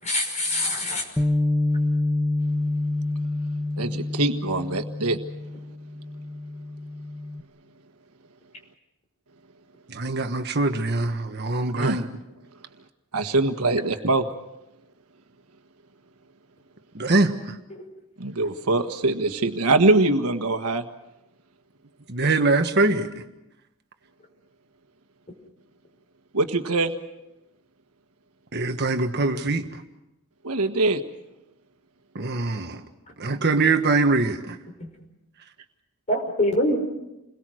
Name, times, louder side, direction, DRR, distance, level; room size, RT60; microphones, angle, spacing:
voice 1, 0.0-1.0 17.7-17.8 34.8-34.9 36.1-36.8, left 1 dB, 30° left, 3 dB, 5.6 m, -24 dB
Bass guitar, 1.2-7.4, left 2 dB, 10° left, 1.1 m, -27 dB
voice 2, 3.8-5.2 11.8-12.1 13.1-14.3 18.2-20.8 26.3-26.9 30.4-31.0, right 2 dB, 85° right, 7 dB, 1.6 m, -23 dB
voice 3, 9.9-12.1 16.9-17.3 22.1-23.1 28.5-29.6 32.1-32.8 33.2-34.6, right 3 dB, 50° right, 6 dB, 1.5 m, -23 dB
29.0 x 22.0 x 6.4 m, 0.95 s
head